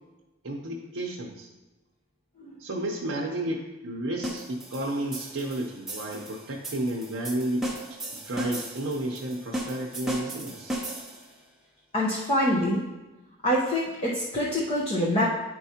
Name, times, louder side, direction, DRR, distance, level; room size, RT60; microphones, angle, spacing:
voice 1, 0.4-1.5 2.6-7.6 8.1-10.8, right 1 dB, 65° right, -2 dB, 0.7 m, -32 dB
sound 1, 4.2-11.3, right 1 dB, ahead, 0.8 m, -36 dB
voice 2, 11.9-12.9 13.4-15.3, equal, 25° left, -5 dB, 0.8 m, -25 dB
10.5 x 4.6 x 2.8 m, 1.1 s
head